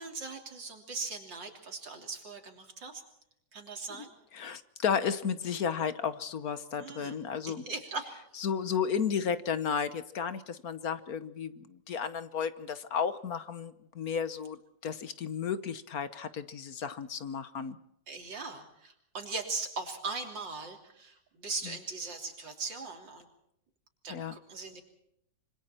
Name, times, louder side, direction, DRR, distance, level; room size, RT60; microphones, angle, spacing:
voice 1, 0.0-3.0 3.5-4.1 6.8-7.2 7.4-8.2 18.1-23.3 24.0-24.8, right 4 dB, 85° right, 3 dB, 3.9 m, -39 dB
voice 2, 4.3-7.6 8.4-17.8 24.1-24.3, left 7 dB, 60° left, 13 dB, 1.4 m, -33 dB
26.5 x 25.0 x 4.4 m, 0.75 s
omnidirectional pair, 1.9 m